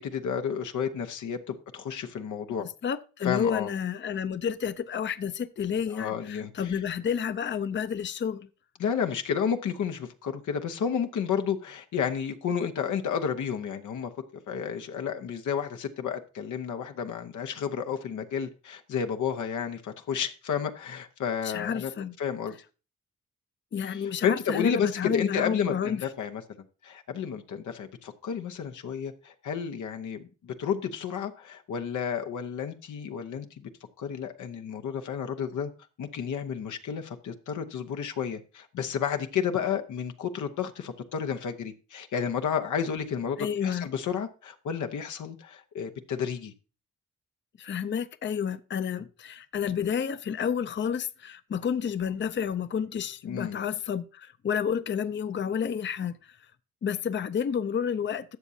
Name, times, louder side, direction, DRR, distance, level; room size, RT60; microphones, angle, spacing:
voice 1, 0.0-2.7 3.2-3.7 5.9-6.8 8.8-14.1 14.5-21.9 22.2-22.6 23.8-26.4 26.8-33.7 34.0-35.7 36.0-46.5 53.2-53.6, left 7 dB, 85° left, 0.9 m, -31 dB
voice 2, 2.6-8.5 21.4-22.1 23.7-26.0 43.4-43.9 47.6-56.4 56.8-58.4, left 7 dB, 40° left, 0.5 m, -30 dB
12.5 x 7.0 x 2.7 m
cardioid pair, 65°, 29 cm